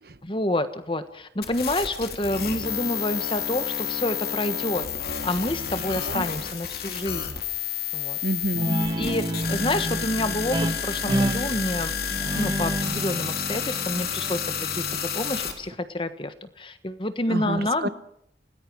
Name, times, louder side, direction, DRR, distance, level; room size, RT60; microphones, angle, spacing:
voice 1, 0.2-4.8 5.2-7.4 7.9-8.2 9.0-11.9 12.3-17.9, left 1 dB, 30° left, 10 dB, 1.4 m, -28 dB
sound 1, 1.4-15.5, left 8 dB, 55° left, 3.2 m, -30 dB
voice 2, 8.2-8.8 17.3-17.9, right 2 dB, 55° right, 14 dB, 1.0 m, -29 dB
Guitar, 8.6-15.7, right 1 dB, 25° right, 1.7 m, -30 dB
29.0 x 19.5 x 4.8 m, 0.73 s
head